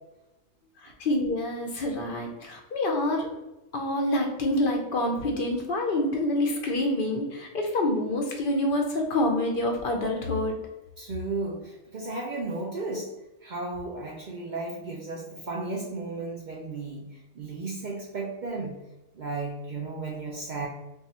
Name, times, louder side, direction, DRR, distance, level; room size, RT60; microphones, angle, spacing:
voice 1, 0.8-3.3 3.7-10.6, left 1 dB, 55° left, 2 dB, 0.6 m, -27 dB
voice 2, 11.0-13.1 13.4-17.1 17.4-18.8 19.1-20.7, right 3 dB, 75° right, -2 dB, 0.4 m, -34 dB
2.7 x 2.3 x 4.0 m, 0.99 s
omnidirectional pair, 1.4 m